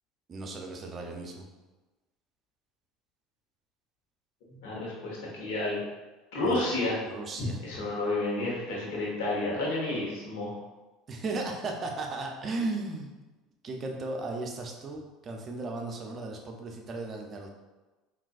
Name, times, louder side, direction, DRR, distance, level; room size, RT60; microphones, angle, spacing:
voice 1, 0.3-1.4 6.4-6.7 7.1-7.6 11.1-13.1 13.6-17.5, right 3 dB, 40° right, 2 dB, 0.6 m, -36 dB
voice 2, 4.5-5.8 6.3-7.0 7.4-10.5, left 2 dB, 75° left, -4 dB, 1.1 m, -31 dB
3.7 x 2.6 x 2.5 m, 1.2 s
hypercardioid pair, 85°, 0 cm